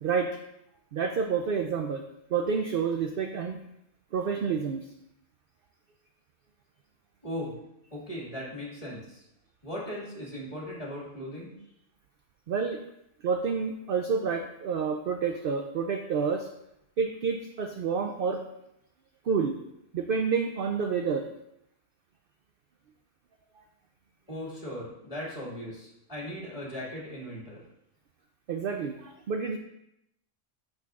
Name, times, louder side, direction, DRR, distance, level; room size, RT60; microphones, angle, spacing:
voice 1, 0.9-2.0 2.3-3.6 4.1-4.8 12.5-12.8 13.2-16.5 17.0-18.4 19.3-19.6 19.9-21.3 28.5-29.6, right 5 dB, 60° right, 4 dB, 0.6 m, -29 dB
voice 2, 7.2-7.5 7.9-9.2 9.6-11.5 24.3-27.6, equal, 30° left, -5 dB, 2.2 m, -38 dB
8.2 x 6.4 x 2.4 m, 0.82 s
omnidirectional pair, 1.3 m